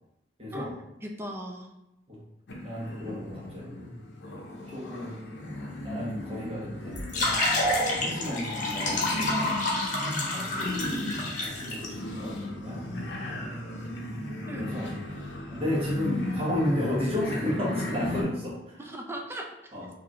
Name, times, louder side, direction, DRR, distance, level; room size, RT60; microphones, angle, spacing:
voice 1, 0.4-0.7 2.1-2.2 2.6-3.9 4.7-5.2 5.8-7.4 7.8-9.5 10.1-12.8 14.5-14.9 15.5-18.8 19.7-19.9, left 1 dB, 30° right, -5 dB, 1.1 m, -33 dB
voice 2, 1.0-1.7 14.5-14.7 18.8-19.9, equal, 15° right, 1 dB, 0.4 m, -38 dB
sound 1, 2.5-18.2, left 1 dB, 65° left, 0.7 m, -36 dB
sound 2, 6.9-11.9, left 2 dB, 45° left, 1.0 m, -28 dB
4.7 x 2.6 x 3.0 m, 0.90 s
head